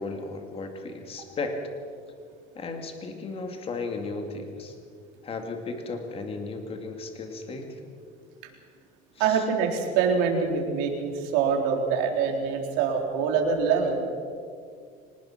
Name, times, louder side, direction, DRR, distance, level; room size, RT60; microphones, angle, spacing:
voice 1, 0.0-1.5 2.5-4.8 5.2-7.9 9.2-9.4, left 3 dB, 30° left, 4 dB, 2.5 m, -35 dB
voice 2, 9.2-14.0, right 6 dB, 90° right, 2 dB, 3.8 m, -25 dB
24.5 x 19.5 x 6.0 m, 2.2 s
cardioid pair, 140°, 19 cm